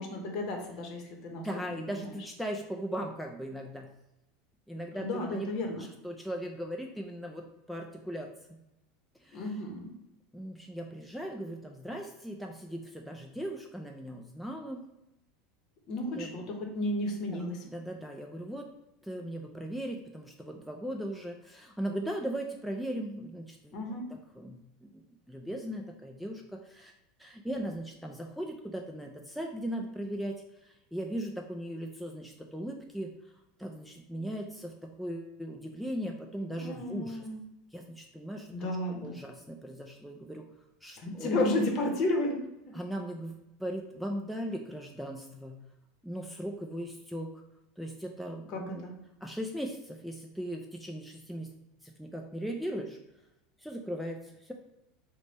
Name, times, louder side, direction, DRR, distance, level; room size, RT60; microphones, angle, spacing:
voice 1, 0.0-1.5 1.9-2.0 4.9-5.8 9.3-9.9 15.9-17.6 23.7-24.1 36.6-37.4 38.5-39.1 41.0-42.8 48.5-48.9, left 1 dB, 50° left, 2 dB, 0.8 m, -32 dB
voice 2, 1.4-3.9 4.7-5.5 5.8-8.6 9.2-9.5 10.3-14.8 16.1-16.4 17.3-18.7 19.0-24.0 24.4-26.9 27.2-30.3 30.6-33.1 33.6-37.2 37.7-38.7 39.0-40.5 40.8-41.3 42.7-45.6 46.0-47.3 47.8-48.9 49.2-51.5 51.8-53.0 53.6-54.5, equal, ahead, 1 dB, 0.3 m, -38 dB
3.2 x 2.1 x 4.0 m, 0.92 s
supercardioid pair, 135°, 0 cm